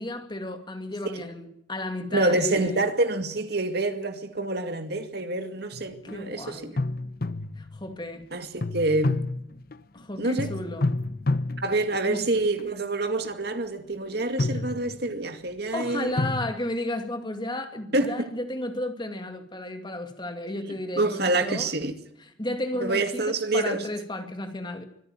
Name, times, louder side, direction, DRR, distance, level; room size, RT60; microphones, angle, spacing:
voice 1, 0.0-2.8 6.0-6.8 7.6-8.3 9.9-10.9 12.1-12.2 14.5-14.6 15.7-21.7 22.4-24.8, left 1 dB, 25° left, 2.5 m, -33 dB
voice 2, 2.1-6.8 8.3-9.4 10.2-10.5 11.6-16.1 17.9-18.3 21.0-21.9 22.8-23.8, right 2 dB, 55° right, 2.2 m, -27 dB
sound 1, 5.7-6.1 6.8-7.9 8.6-10.0 10.4-12.7 13.2-13.5 14.2-15.3 16.2-16.5, left 2 dB, 50° left, 0.9 m, -29 dB
25.0 x 14.0 x 9.2 m
head